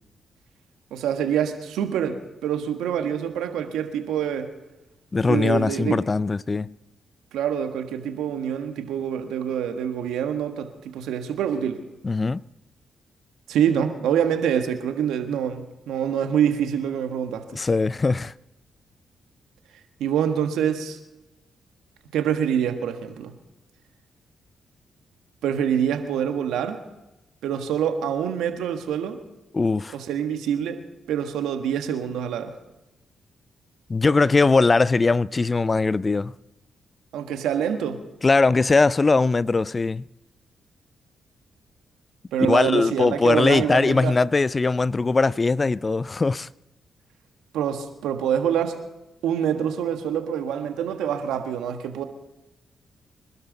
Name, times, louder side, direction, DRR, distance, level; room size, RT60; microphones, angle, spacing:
voice 1, 0.9-4.5 5.2-6.0 7.3-11.8 13.5-17.6 20.0-21.0 22.1-23.3 25.4-26.8 27.4-29.2 29.9-30.8 31.1-32.5 37.1-38.0 42.3-44.1 47.5-48.8 49.2-52.0, right 9 dB, 80° right, 1.4 m, -26 dB
voice 2, 5.1-6.7 12.0-12.4 17.5-18.3 29.5-29.9 33.9-36.3 38.2-40.0 42.5-46.5, left 3 dB, 35° left, 0.4 m, -20 dB
24.5 x 12.5 x 4.0 m
hypercardioid pair, 45°, 0 cm